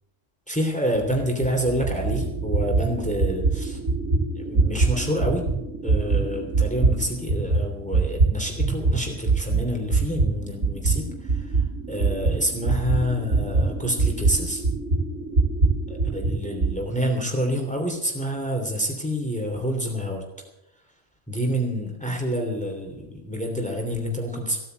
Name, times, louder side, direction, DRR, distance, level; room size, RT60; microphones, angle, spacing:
voice 1, 0.5-3.8 4.3-5.5 5.8-11.6 11.9-14.6 15.9-20.2 21.3-24.6, equal, 5° left, 1 dB, 3.1 m, -28 dB
sound 1, 1.0-9.0 9.3-16.7, right 3 dB, 80° right, 3.8 m, -24 dB
16.5 x 9.2 x 8.0 m, 0.87 s
omnidirectional pair, 1.3 m